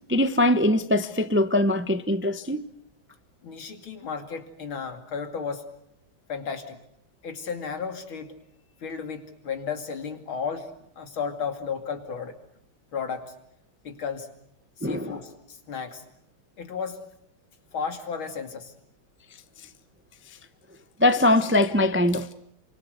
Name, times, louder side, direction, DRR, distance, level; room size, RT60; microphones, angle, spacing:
voice 1, 0.1-2.6 14.8-15.2 21.0-22.3, left 1 dB, 10° right, 0.5 m, -22 dB
voice 2, 3.4-5.6 6.3-6.8 7.2-8.3 8.8-10.7 11.0-12.3 12.9-13.2 13.8-14.3 14.8-16.0 16.6-17.0 17.7-18.7, left 6 dB, 80° left, 3.3 m, -33 dB
29.0 x 25.5 x 8.1 m
omnidirectional pair, 2.2 m